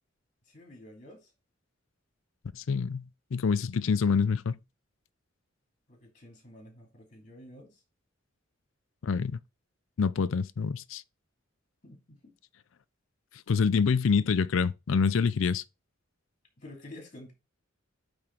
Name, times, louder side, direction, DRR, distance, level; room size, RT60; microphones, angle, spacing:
voice 1, 0.5-1.3 5.9-7.8 11.8-12.3 16.6-17.3, left 1 dB, 40° left, 2.7 m, -50 dB
voice 2, 2.5-3.1 3.3-4.6 9.0-9.4 10.0-11.0 13.5-15.6, left 5 dB, 75° left, 0.4 m, -26 dB
8.6 x 3.5 x 4.5 m
head